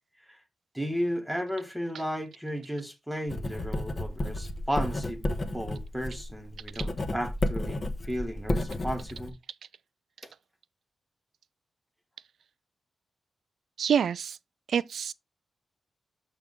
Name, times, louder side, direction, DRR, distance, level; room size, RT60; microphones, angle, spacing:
voice 1, 0.7-5.2 5.5-9.3, equal, 5° right, 0.9 m, -34 dB
Writing, 3.3-9.3, left 1 dB, 25° left, 0.7 m, -32 dB
voice 2, 13.8-14.4 14.7-15.1, right 8 dB, 65° right, 0.3 m, -27 dB
6.6 x 3.5 x 5.1 m
wide cardioid pair, 175°, 0 cm